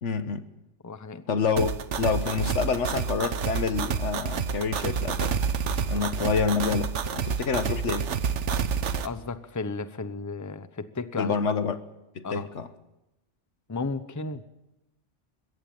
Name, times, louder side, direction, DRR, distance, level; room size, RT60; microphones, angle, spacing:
voice 1, 0.0-0.5 1.3-5.4 5.9-8.1 11.2-11.8 12.1-12.7, left 5 dB, 75° left, 1.5 m, -28 dB
voice 2, 0.8-1.4 5.9-6.1 9.0-11.3 12.2-12.5 13.7-14.4, left 3 dB, 15° left, 0.8 m, -34 dB
sound 1, 1.6-9.1, right 6 dB, 75° right, 1.3 m, -29 dB
22.5 x 16.5 x 8.8 m
omnidirectional pair, 1.2 m